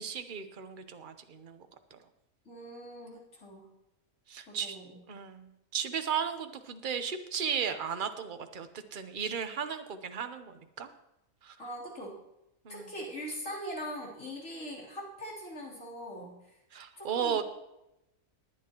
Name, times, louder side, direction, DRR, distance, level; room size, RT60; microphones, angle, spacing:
voice 1, 0.0-2.0 4.3-4.8 5.1-10.9 11.4-11.6 12.6-12.9 16.7-17.4, right 7 dB, 40° right, 8 dB, 0.9 m, -35 dB
voice 2, 2.5-3.7 4.5-5.0 11.6-12.2 12.7-16.6 17.0-17.4, equal, 60° left, -4 dB, 3.9 m, -41 dB
20.0 x 9.5 x 3.0 m, 0.88 s
omnidirectional pair, 1.5 m